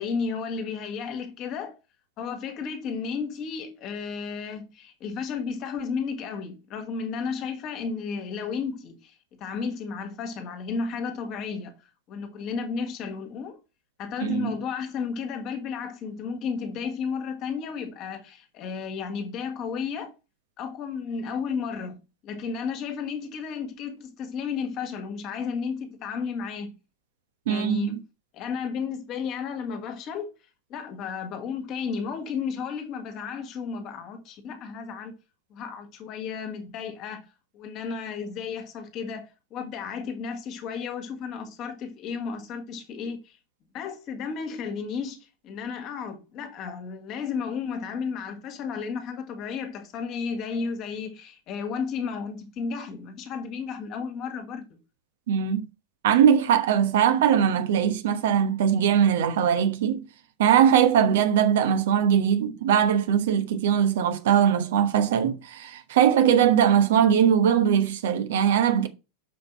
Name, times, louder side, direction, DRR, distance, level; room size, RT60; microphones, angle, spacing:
voice 1, 0.0-1.8 2.2-11.8 12.1-13.6 14.0-20.1 20.6-26.7 27.5-28.0 28.3-30.3 30.7-35.1 35.5-37.3 37.5-43.3 43.7-54.8, left 5 dB, 35° left, 1.8 m, -33 dB
voice 2, 14.2-14.5 27.5-28.0 55.3-55.6 56.0-60.0 60.4-68.9, right 8 dB, 55° right, 1.1 m, -21 dB
6.7 x 5.2 x 5.6 m
figure-of-eight pair, 90°, 0 cm